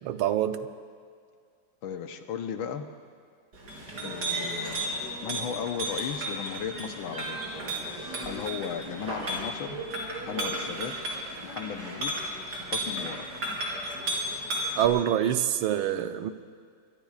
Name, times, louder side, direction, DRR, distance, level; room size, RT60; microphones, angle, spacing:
voice 1, 0.0-0.6 14.8-16.3, right 11 dB, 90° right, 9 dB, 1.6 m, -25 dB
voice 2, 1.8-2.9 4.0-7.5 8.2-9.8 10.3-11.0 11.4-12.2 12.7-13.3, left 8 dB, 85° left, 6 dB, 1.8 m, -36 dB
Chink clink, 3.5-14.9, right 1 dB, 55° right, 4.0 m, -34 dB
24.5 x 23.5 x 2.4 m, 2.1 s
omnidirectional pair, 2.2 m